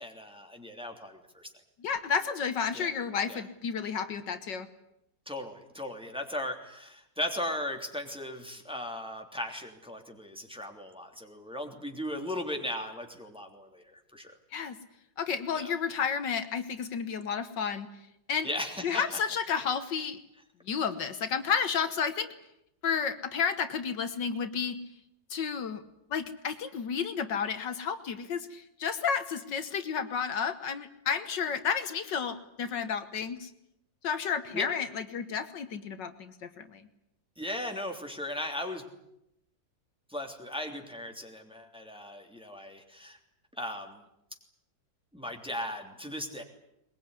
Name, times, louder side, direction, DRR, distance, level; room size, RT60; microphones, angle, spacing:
voice 1, 0.0-1.5 2.7-2.9 3.3-3.4 5.3-14.3 15.5-15.7 18.4-19.2 34.5-34.7 37.4-38.8 40.1-43.2 43.6-44.0 45.1-46.4, left 1 dB, 5° right, 3 dB, 3.1 m, -37 dB
voice 2, 1.8-4.7 14.5-14.8 15.2-17.9 18.3-18.5 18.8-20.2 20.7-22.3 22.8-24.8 25.3-25.8 26.1-33.5 34.0-36.8, left 6 dB, 70° left, 10 dB, 1.8 m, -31 dB
22.0 x 21.0 x 9.8 m, 0.81 s
omnidirectional pair, 2.0 m